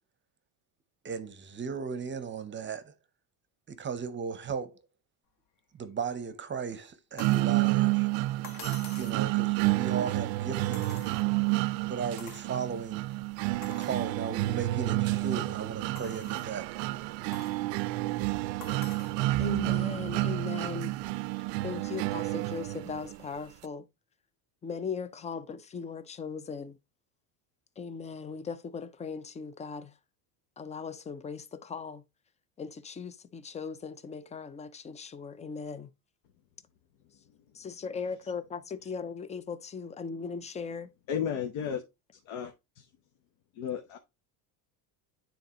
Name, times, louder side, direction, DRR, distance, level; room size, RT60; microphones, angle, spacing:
voice 1, 1.0-2.9 3.7-4.8 5.7-8.1 8.8-11.0 11.8-13.1 13.6-16.7, right 6 dB, 25° right, 0.7 m, -36 dB
sound 1, 7.2-7.5 8.4-9.2 10.7-11.5 12.2-12.5 13.0-13.1 13.6-14.1 14.7-14.8 16.0-16.6 17.3-17.6 18.6-19.2 20.4-20.5, left 6 dB, 45° left, 1.4 m, -47 dB
sound 2, 7.2-23.2, right 18 dB, 70° right, 0.5 m, -30 dB
voice 2, 19.4-21.0 21.6-23.9 24.6-26.8 27.8-29.9 30.6-32.0 32.6-35.9 37.5-40.9, left 5 dB, 15° left, 0.4 m, -38 dB
voice 3, 41.1-41.8 42.2-42.9 43.5-44.0, left 8 dB, 70° left, 1.1 m, -34 dB
9.2 x 3.9 x 2.9 m
cardioid pair, 125°, 46 cm